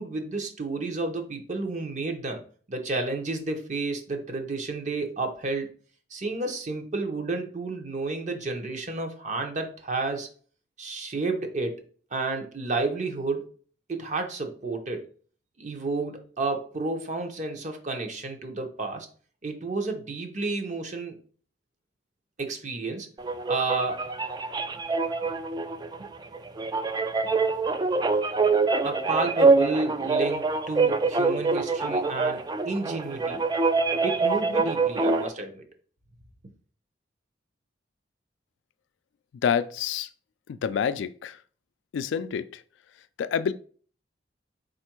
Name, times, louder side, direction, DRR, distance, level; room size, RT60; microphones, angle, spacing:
voice 1, 0.0-2.4 2.7-5.7 6.1-10.3 10.8-11.8 12.1-13.5 13.9-15.1 15.6-19.1 19.4-21.2 22.4-23.1 23.5-24.0 28.8-33.4 34.0-35.6, right 3 dB, 40° right, 0.8 m, -31 dB
sound 1, 23.2-35.3, right 3 dB, 25° right, 0.3 m, -25 dB
voice 2, 39.4-40.1 40.5-41.4 41.9-42.6 43.2-43.5, left 7 dB, 90° left, 0.3 m, -27 dB
4.5 x 2.5 x 4.4 m
head